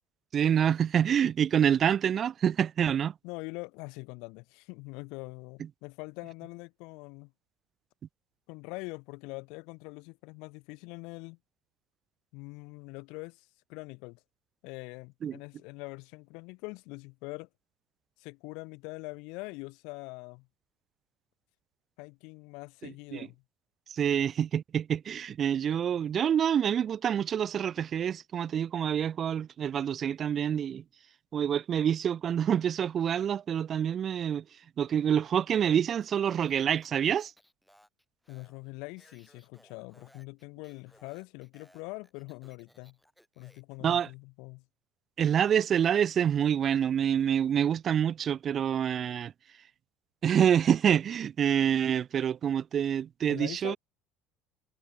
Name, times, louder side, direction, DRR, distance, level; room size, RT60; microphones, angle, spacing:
voice 1, 0.3-3.1 15.2-15.4 22.8-23.3 23.9-30.8 31.3-34.4 34.8-37.3 43.8-44.1 45.2-49.3 50.2-53.8, right 9 dB, 45° right, 0.3 m, -27 dB
voice 2, 3.2-7.3 8.5-11.4 12.3-14.2 14.6-17.5 18.2-20.5 22.0-23.4 38.3-43.0 43.4-44.6 53.3-53.8, left 28 dB, 75° left, 0.5 m, -43 dB
Speech, 36.0-43.8, equal, ahead, 6.5 m, -63 dB
supercardioid pair, 85°, 0 cm